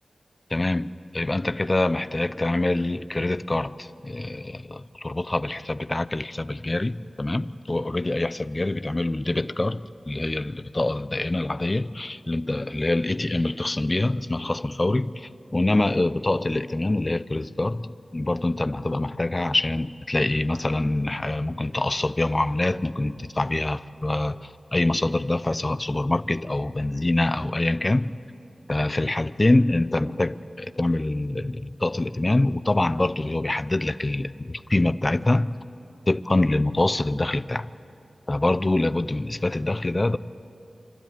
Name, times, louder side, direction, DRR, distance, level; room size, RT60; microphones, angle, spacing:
voice 1, 0.5-28.1 28.7-35.6 36.1-37.7 38.3-40.2, left 2 dB, 30° left, 0.5 m, -25 dB
25.5 x 12.5 x 9.5 m
wide cardioid pair, 70°, 0 cm